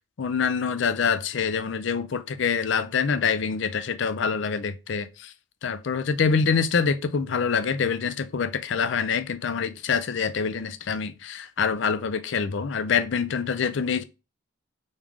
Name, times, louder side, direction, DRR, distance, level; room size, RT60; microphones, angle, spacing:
voice 1, 0.2-5.3 5.6-14.0, left 6 dB, 60° left, 0.4 m, -25 dB
3.6 x 3.2 x 3.6 m
head